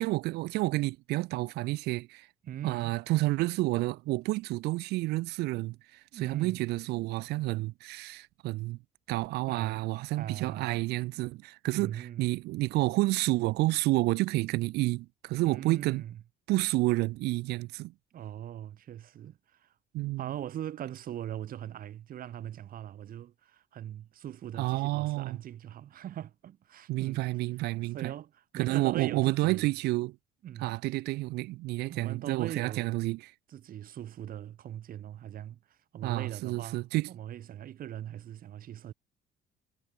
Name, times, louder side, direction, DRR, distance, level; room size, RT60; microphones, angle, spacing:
voice 1, 0.0-2.3 2.6-8.8 9.1-11.9 12.2-16.0 16.5-17.9 19.9-20.4 24.6-25.4 26.9-28.1 28.5-30.2 30.6-33.3 36.0-37.1, right 20 dB, 75° right, 0.4 m, -30 dB
voice 2, 2.4-2.9 6.1-6.6 9.5-9.9 10.1-10.8 11.7-12.3 15.4-16.2 18.1-19.7 20.2-27.3 27.9-29.7 30.4-30.8 31.9-32.9 33.5-38.9, right 11 dB, 55° right, 2.6 m, -41 dB
cardioid pair, 110°, 17 cm